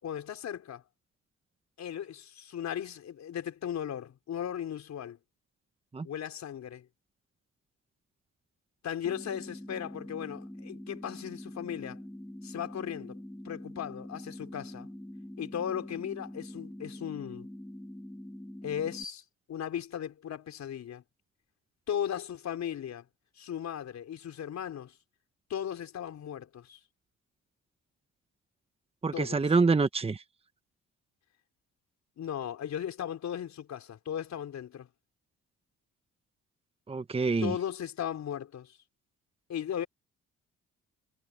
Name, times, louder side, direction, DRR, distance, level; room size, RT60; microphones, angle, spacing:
voice 1, 0.0-0.8 1.8-5.2 6.0-6.9 8.8-12.0 12.4-14.9 15.4-17.5 18.6-19.2 19.5-21.0 21.9-23.1 23.4-24.9 25.5-26.8 29.1-29.5 32.2-34.9 37.4-38.8 39.5-39.9, left 9 dB, 65° left, 4.5 m, -37 dB
sound 1, 9.0-19.0, left 1 dB, 5° left, 5.1 m, -44 dB
voice 2, 29.0-30.2 36.9-37.5, right 4 dB, 20° right, 1.1 m, -26 dB
cardioid pair, 90°, 30 cm